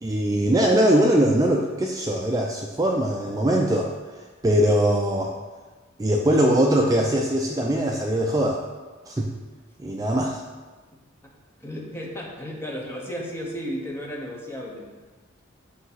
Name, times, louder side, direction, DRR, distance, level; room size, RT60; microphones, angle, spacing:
voice 1, 0.0-3.9 4.4-5.3 6.0-8.6 9.1-9.3 9.8-10.4, right 1 dB, 15° right, 0 dB, 0.4 m, -21 dB
voice 2, 11.6-14.9, equal, 10° left, -2 dB, 1.0 m, -34 dB
8.1 x 3.0 x 5.7 m, 1.3 s
head